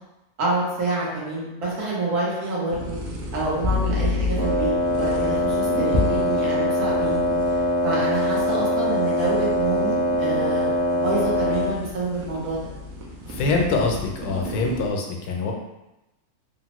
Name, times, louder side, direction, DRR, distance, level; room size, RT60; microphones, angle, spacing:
voice 1, 0.4-3.0 3.3-7.3 7.8-12.6, right 2 dB, 90° right, -6 dB, 1.5 m, -27 dB
sound 1, 2.7-14.9, left 2 dB, 75° right, 1.1 m, -31 dB
Wind instrument woodwind instrument, 4.4-11.8, left 1 dB, 5° left, 0.9 m, -23 dB
voice 2, 13.3-15.5, left 3 dB, 90° left, 1 dB, 1.1 m, -24 dB
3.4 x 2.0 x 2.9 m, 0.98 s
omnidirectional pair, 1.6 m